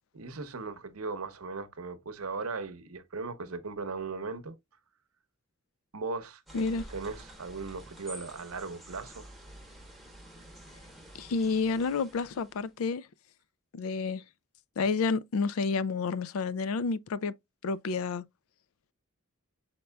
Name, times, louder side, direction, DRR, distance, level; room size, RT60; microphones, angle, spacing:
voice 1, 0.1-4.5 5.9-9.3, right 4 dB, 90° right, 0.8 m, -38 dB
voice 2, 6.5-6.9 11.1-13.1 13.7-14.2 14.8-17.3 17.6-18.2, left 4 dB, 70° left, 0.4 m, -30 dB
sound 1, 6.5-12.7, right 1 dB, ahead, 1.1 m, -49 dB
5.3 x 4.3 x 2.2 m
head